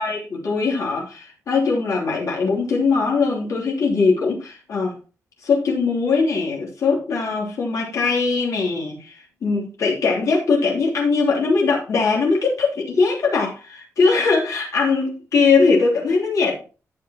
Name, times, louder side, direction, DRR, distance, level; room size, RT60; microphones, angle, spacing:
voice 1, 0.0-5.0 5.4-16.6, left 4 dB, 70° left, 3.1 m, -21 dB
12.0 x 7.3 x 3.0 m
wide cardioid pair, 140°, 6 cm